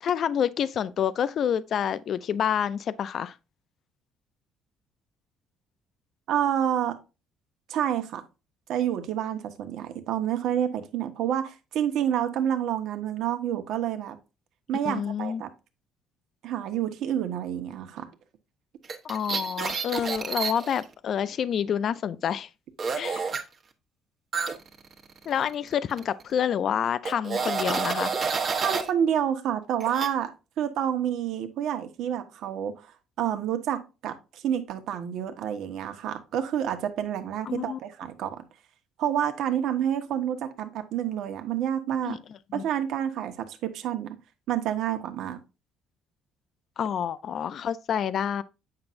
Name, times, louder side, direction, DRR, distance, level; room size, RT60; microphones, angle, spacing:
voice 1, 0.0-3.3 14.9-15.4 19.0-22.5 23.0-23.3 25.3-28.1 37.5-37.8 42.0-42.2 42.5-42.6 46.8-48.4, left 8 dB, 50° left, 0.4 m, -28 dB
voice 2, 6.3-7.0 7.7-8.2 8.7-14.2 14.7-15.5 16.4-18.1 28.6-30.3 30.6-32.9 33.2-38.4 39.0-42.2 42.5-44.2 44.5-45.4, right 10 dB, 70° right, 1.1 m, -28 dB
sound 1, 18.8-20.8 22.8-23.4 24.3-25.7 26.0-26.2 27.1-28.9 29.8-30.1, right 5 dB, 40° right, 1.2 m, -29 dB
8.7 x 5.7 x 2.6 m
cardioid pair, 120°, 0 cm